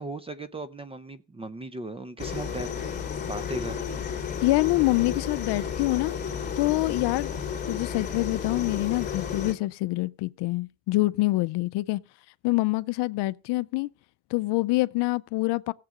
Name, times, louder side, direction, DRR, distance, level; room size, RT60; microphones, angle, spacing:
voice 1, 0.0-2.7 3.3-3.8, right 2 dB, 15° right, 0.4 m, -37 dB
sound 1, 2.2-9.5, left 7 dB, 20° left, 2.7 m, -32 dB
voice 2, 4.4-6.2 6.6-7.3 7.7-12.0 12.4-13.9 14.3-15.7, left 20 dB, 60° left, 0.6 m, -25 dB
17.0 x 7.6 x 3.7 m
cardioid pair, 140°, 47 cm